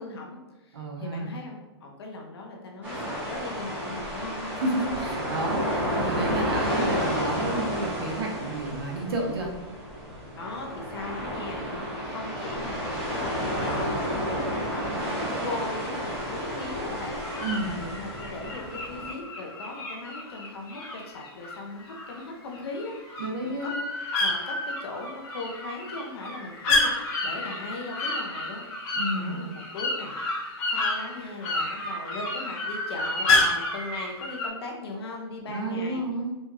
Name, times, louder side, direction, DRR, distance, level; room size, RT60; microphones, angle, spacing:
voice 1, 0.0-4.5 10.4-23.7 24.2-28.6 29.1-30.1 30.7-36.0, left 2 dB, 65° left, 1 dB, 0.9 m, -39 dB
voice 2, 0.7-1.3 4.6-9.5 17.4-17.8 23.2-23.8 28.9-29.4 35.5-36.3, right 2 dB, 60° right, 1 dB, 0.8 m, -30 dB
sound 1, 2.8-19.1, equal, 10° right, 0.9 m, -31 dB
sound 2, 15.2-15.9 16.9-22.2 22.5-34.5, left 2 dB, 20° left, 0.6 m, -30 dB
4.4 x 2.3 x 2.8 m, 1.1 s
hypercardioid pair, 170°, 14 cm